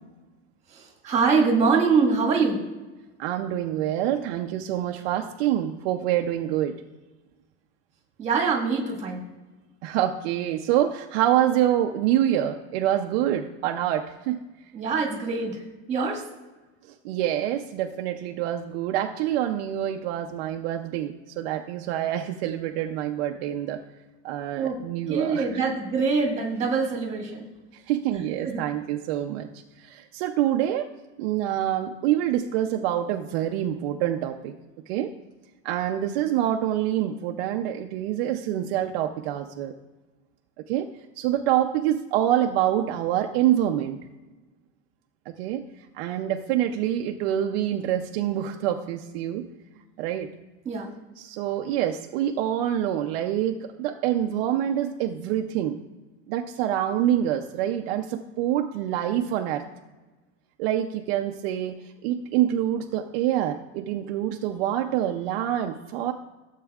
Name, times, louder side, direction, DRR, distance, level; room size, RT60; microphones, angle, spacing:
voice 1, 0.7-2.6 8.2-9.3 14.7-15.6 15.9-16.2 24.6-24.8 25.1-27.4 28.1-28.6 50.6-50.9, right 4 dB, 20° right, -1 dB, 1.7 m, -24 dB
voice 2, 3.2-6.8 9.8-14.4 17.0-23.8 24.2-25.6 27.7-29.5 29.8-30.9 31.2-34.5 34.9-35.1 35.6-39.7 40.7-40.9 41.2-44.0 45.3-45.6 45.9-49.4 50.0-50.3 51.2-55.8 56.3-59.6 60.6-61.8 62.0-66.1, right 11 dB, 65° right, 4 dB, 0.6 m, -26 dB
15.5 x 7.4 x 2.4 m, 1.2 s
cardioid pair, 170°, 33 cm